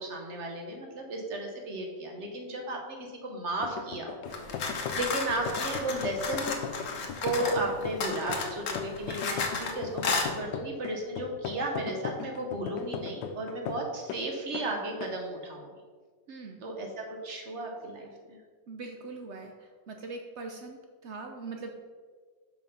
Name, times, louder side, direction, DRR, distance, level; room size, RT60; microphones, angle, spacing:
voice 1, 0.0-3.0 3.2-4.2 4.9-6.6 7.2-15.6 16.6-18.4, right 1 dB, 45° right, 2 dB, 1.3 m, -34 dB
sound 1, 3.6-14.3 14.5-14.7 15.0-15.2, left 7 dB, 90° left, 1.3 m, -38 dB
sound 2, 4.2-10.4, left 2 dB, 15° left, 1.5 m, -48 dB
sound 3, 4.3-7.6 8.0-9.7 10.0-10.3, left 4 dB, 60° left, 1.3 m, -33 dB
voice 2, 16.3-16.6 18.7-21.7, right 3 dB, 80° right, 3 dB, 0.6 m, -42 dB
5.8 x 5.6 x 5.6 m, 1.6 s
omnidirectional pair, 2.0 m